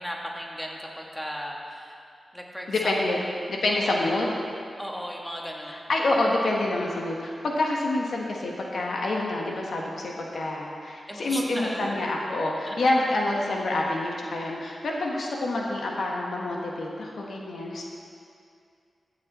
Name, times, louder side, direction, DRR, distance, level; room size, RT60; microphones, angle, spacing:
voice 1, 0.0-2.0 2.3-3.3 3.7-4.0 4.8-5.9 11.1-12.0 12.7-12.8 14.6-14.7, equal, 5° left, -1 dB, 1.8 m, -36 dB
voice 2, 2.7-3.2 3.5-4.4 5.7-17.8, left 2 dB, 75° left, -1 dB, 1.2 m, -27 dB
15.0 x 6.5 x 4.2 m, 2.4 s
cardioid pair, 45°, 0 cm